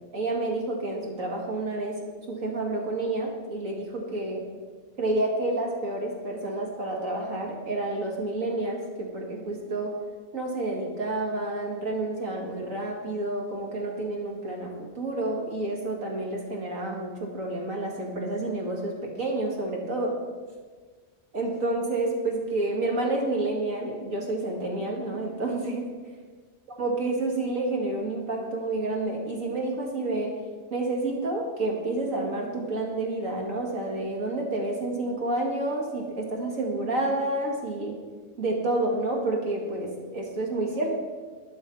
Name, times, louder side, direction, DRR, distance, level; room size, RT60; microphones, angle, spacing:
voice 1, 0.1-2.0 2.3-4.4 5.0-9.9 10.3-20.1 21.3-25.9 26.8-30.3 30.7-38.0 38.4-41.0, right 2 dB, 75° right, -1 dB, 2.6 m, -29 dB
12.0 x 10.5 x 5.6 m, 1.5 s
omnidirectional pair, 1.4 m